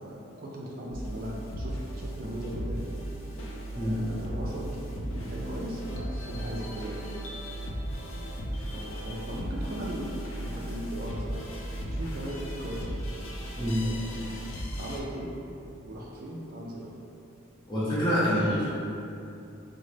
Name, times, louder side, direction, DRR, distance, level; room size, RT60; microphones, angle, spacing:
voice 1, 0.0-2.9 3.7-7.1 8.5-11.6 11.9-13.0 13.5-14.4 14.8-15.3 15.8-16.9, equal, 45° right, -3 dB, 0.3 m, -38 dB
sound 1, 0.9-15.0, equal, 75° left, 0.5 m, -36 dB
voice 2, 17.7-18.7, equal, 20° left, -10 dB, 0.8 m, -26 dB
3.7 x 2.1 x 3.2 m, 2.7 s
head